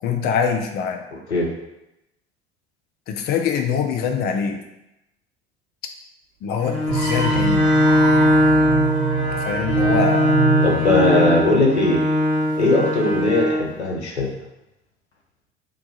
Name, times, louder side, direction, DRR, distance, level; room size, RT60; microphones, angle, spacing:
voice 1, 0.0-1.0 3.1-4.6 6.4-7.6 9.3-10.4, left 6 dB, 30° left, 5 dB, 0.4 m, -24 dB
Bowed string instrument, 6.6-13.7, left 1 dB, 25° right, 0.9 m, -20 dB
sound 1, 6.9-12.0, right 6 dB, 55° right, 0.8 m, -26 dB
voice 2, 10.6-12.0 12.6-14.3, left 2 dB, 90° left, -1 dB, 0.6 m, -19 dB
2.9 x 2.3 x 3.9 m, 0.89 s
figure-of-eight pair, 65°, 32 cm